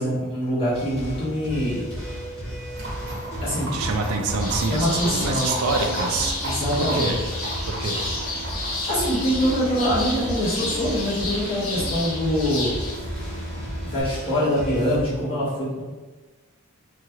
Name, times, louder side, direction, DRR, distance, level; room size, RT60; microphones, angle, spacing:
voice 1, 0.0-1.8 3.4-3.8 4.6-5.5 6.4-7.1 8.9-12.8 13.5-15.8, equal, 25° left, -10 dB, 1.2 m, -24 dB
sound 1, 0.7-15.0, equal, 5° left, 1.1 m, -34 dB
Livestock farm animals working animals, 2.7-14.0, equal, 55° right, 0.9 m, -35 dB
voice 2, 3.7-6.3 6.8-7.2 7.7-8.0, right 4 dB, 75° right, 4 dB, 0.4 m, -26 dB
sound 2, 4.4-12.9, left 2 dB, 75° left, 0.8 m, -31 dB
2.9 x 2.4 x 2.8 m, 1.2 s
head